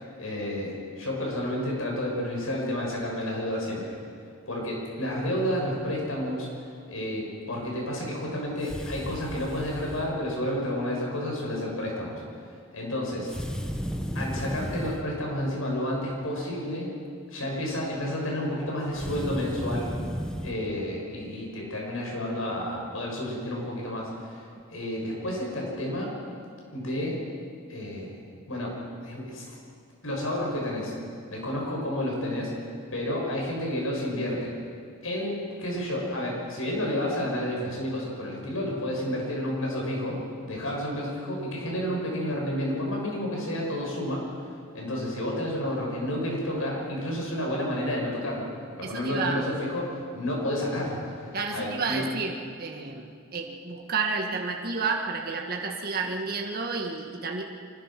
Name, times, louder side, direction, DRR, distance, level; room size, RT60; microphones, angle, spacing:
voice 1, 0.2-3.9 4.5-12.2 12.7-13.3 14.1-16.9 17.3-19.9 20.4-26.2 26.7-27.2 27.7-28.2 28.5-28.8 29.0-29.6 30.0-30.9 31.3-32.5 32.9-34.5 35.0-40.2 40.5-48.5 48.8-52.0, left 1 dB, 85° left, -2 dB, 7.0 m, -30 dB
sound 1, 8.6-10.1 13.3-15.1 18.9-20.6, equal, 5° left, 1.2 m, -34 dB
voice 2, 48.8-49.5 51.3-52.3 52.6-57.4, right 4 dB, 50° right, 1 dB, 1.7 m, -31 dB
24.5 x 20.5 x 6.0 m, 2.3 s
head